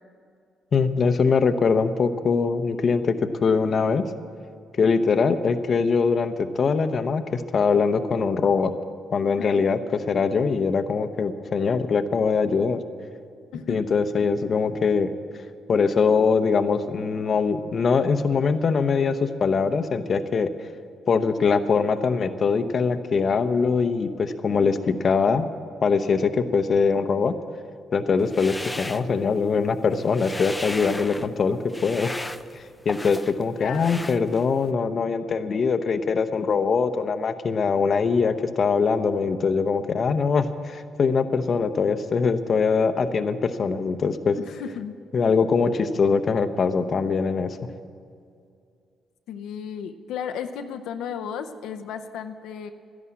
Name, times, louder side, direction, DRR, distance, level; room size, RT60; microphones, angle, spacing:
voice 1, 0.7-4.0 4.8-8.7 9.1-9.8 10.1-12.8 13.7-15.1 15.7-20.5 21.1-25.5 25.8-27.3 27.9-32.1 32.8-44.4 45.1-47.6, left 5 dB, 50° left, 9 dB, 0.8 m, -22 dB
sound 1, 28.2-29.6 29.9-31.3 31.7-33.4 33.7-34.7, left 1 dB, 10° left, 0.5 m, -36 dB
voice 2, 33.6-34.1 44.4-44.9 49.3-52.7, left 7 dB, 85° left, 6 dB, 0.7 m, -34 dB
12.5 x 11.0 x 8.5 m, 2.3 s
cardioid pair, 90°, 0 cm